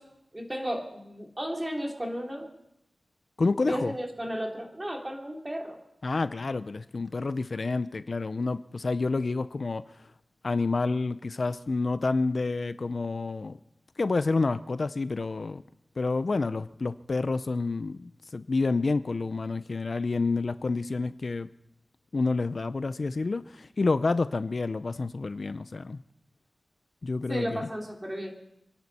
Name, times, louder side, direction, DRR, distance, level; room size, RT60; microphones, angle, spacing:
voice 1, 0.3-2.5 3.6-5.8 27.3-28.3, equal, 20° right, 0 dB, 3.2 m, -33 dB
voice 2, 3.4-3.9 6.0-9.8 10.4-13.6 14.0-15.6 16.0-21.5 22.1-26.0 27.0-27.7, left 3 dB, 50° left, 13 dB, 0.5 m, -29 dB
28.5 x 11.0 x 4.2 m, 0.84 s
wide cardioid pair, 90°, 0 cm